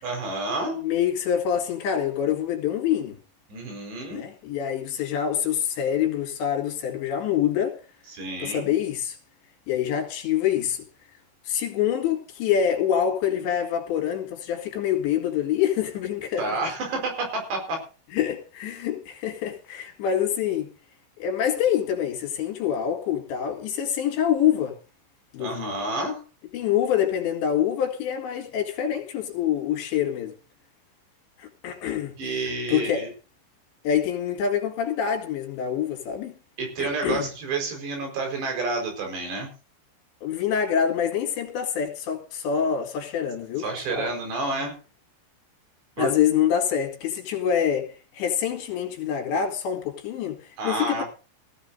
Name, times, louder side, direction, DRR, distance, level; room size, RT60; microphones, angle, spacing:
voice 1, 0.0-0.8 3.5-4.2 8.1-8.7 16.4-17.8 25.4-26.2 32.2-33.1 36.6-39.5 43.6-44.7 46.0-46.1 50.6-51.0, right 3 dB, 70° right, 6.8 m, -29 dB
voice 2, 0.8-3.2 4.1-7.8 8.4-9.2 9.7-10.8 11.5-16.4 18.1-20.7 21.2-24.8 25.3-25.7 26.5-30.3 31.4-32.1 32.7-33.1 33.8-36.3 36.8-37.3 40.2-44.1 46.0-47.9 48.1-50.4 50.6-51.0, left 9 dB, 80° left, 4.4 m, -26 dB
18.5 x 15.5 x 2.6 m
omnidirectional pair, 5.1 m